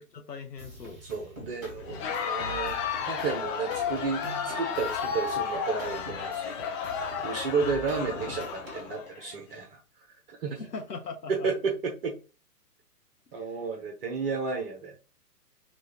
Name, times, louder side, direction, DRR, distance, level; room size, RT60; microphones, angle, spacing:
voice 1, 0.0-1.0 10.5-11.5 13.4-13.6, left 4 dB, 85° left, 1.0 m, -40 dB
sound 1, 0.6-8.9, right 1 dB, 10° right, 0.5 m, -44 dB
voice 2, 1.0-6.9 7.2-9.8 10.3-10.6 11.3-12.2 13.3-15.0, right 4 dB, 35° right, 1.0 m, -32 dB
Crowd, 1.8-9.3, left 7 dB, 20° left, 0.7 m, -33 dB
6.1 x 2.5 x 2.9 m
figure-of-eight pair, 120°, 48 cm